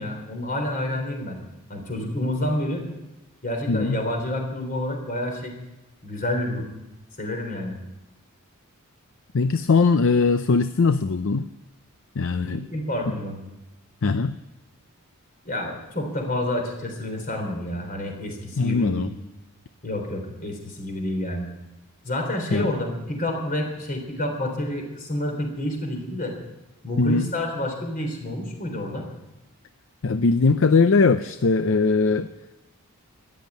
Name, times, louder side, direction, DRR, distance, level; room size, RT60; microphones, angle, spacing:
voice 1, 0.0-1.4 1.7-2.8 3.4-5.5 6.0-6.7 7.2-7.8 12.4-13.4 15.5-19.0 19.8-21.5 22.0-26.4 26.8-29.1, left 1 dB, 40° left, 3 dB, 3.6 m, -29 dB
voice 2, 3.7-4.0 9.3-11.5 12.2-12.7 14.0-14.3 18.6-19.1 22.5-22.7 27.0-27.3 30.0-32.3, left 4 dB, 60° left, 11 dB, 0.5 m, -20 dB
14.0 x 11.0 x 9.1 m, 0.99 s
head